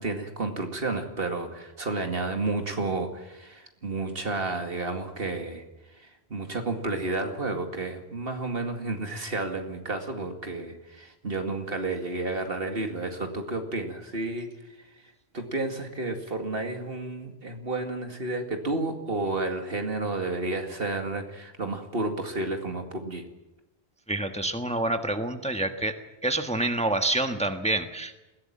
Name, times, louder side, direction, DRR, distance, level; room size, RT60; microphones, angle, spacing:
voice 1, 0.0-5.6 6.0-14.5 15.3-23.2, right 2 dB, 60° right, 5 dB, 2.5 m, -31 dB
voice 2, 24.1-25.9 26.2-28.1, right 2 dB, 5° left, 7 dB, 1.3 m, -27 dB
21.0 x 16.0 x 8.9 m, 1.0 s
omnidirectional pair, 1.1 m